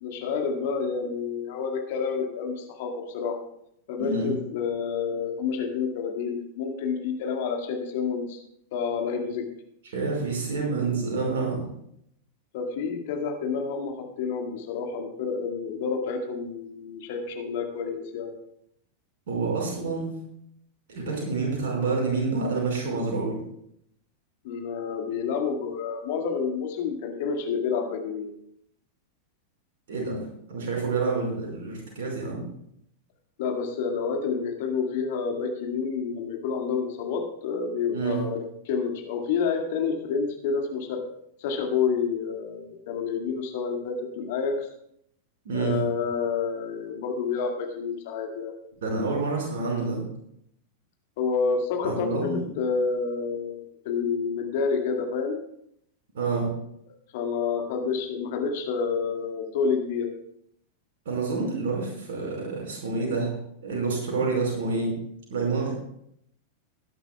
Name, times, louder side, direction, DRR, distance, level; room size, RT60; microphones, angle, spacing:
voice 1, 0.0-3.4 3.9-8.4 8.7-9.4 12.5-18.3 24.4-28.3 33.4-38.4 38.7-41.0 41.4-44.7 45.5-48.5 51.2-55.4 57.1-60.1, left 5 dB, 50° left, 2 dB, 2.1 m, -29 dB
voice 2, 4.0-4.3 9.9-11.7 19.3-20.1 20.9-23.3 29.9-32.4 37.9-38.2 45.5-45.8 48.8-50.0 51.8-52.4 56.1-56.5 61.1-64.9 65.3-65.7, right 3 dB, 60° right, -1 dB, 5.3 m, -28 dB
20.0 x 10.5 x 2.4 m, 0.73 s
figure-of-eight pair, 90°, 0 cm